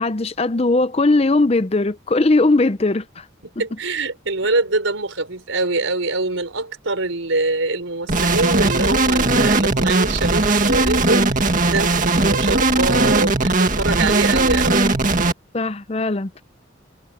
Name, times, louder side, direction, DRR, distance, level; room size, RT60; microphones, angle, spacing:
voice 1, 0.0-3.2 15.5-16.4, left 2 dB, 30° left, 0.6 m, -19 dB
voice 2, 3.4-14.9, right 3 dB, 90° right, 4.9 m, -24 dB
sound 1, 8.1-15.3, right 2 dB, 40° right, 2.0 m, -18 dB
head